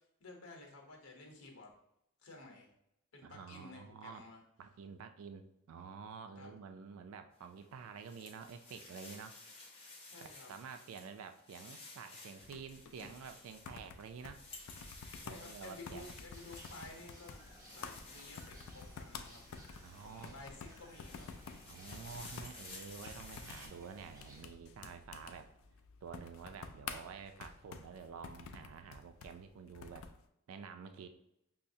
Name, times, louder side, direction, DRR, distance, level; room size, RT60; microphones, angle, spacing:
voice 1, 0.2-1.7 2.2-2.7 3.1-4.4 6.4-6.5 10.1-10.5 15.2-17.4 17.7-19.4 20.0-21.3, left 2 dB, 90° left, 1 dB, 0.9 m, -53 dB
voice 2, 3.2-4.2 4.6-9.4 10.2-14.4 15.2-16.1 19.8-20.6 21.7-25.5 26.0-30.1 30.5-31.1, right 6 dB, 75° right, 8 dB, 0.3 m, -49 dB
sound 1, 7.4-20.3 20.7-23.7, left 3 dB, 25° left, 0.6 m, -55 dB
sound 2, 12.4-30.2, left 5 dB, 70° left, 0.3 m, -51 dB
sound 3, 16.3-24.4, right 1 dB, 15° right, 0.6 m, -59 dB
5.5 x 2.0 x 2.6 m, 0.81 s
head